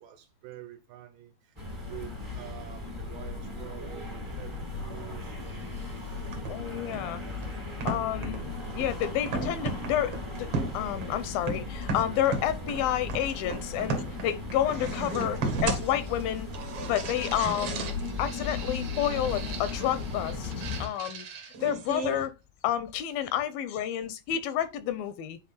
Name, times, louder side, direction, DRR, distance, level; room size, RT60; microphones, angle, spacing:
voice 1, 0.0-5.4 5.9-6.4 7.3-7.6, right 13 dB, 75° right, 2.1 m, -47 dB
sound 1, 1.5-20.8, left 3 dB, 25° right, 0.6 m, -37 dB
sound 2, 6.2-22.3, right 3 dB, 55° right, 1.8 m, -36 dB
voice 2, 6.5-7.2 7.9-8.4 8.7-16.5 16.9-21.3 21.6-22.3 22.6-25.4, left 11 dB, 80° left, 2.3 m, -30 dB
9.7 x 3.4 x 4.2 m
omnidirectional pair, 4.5 m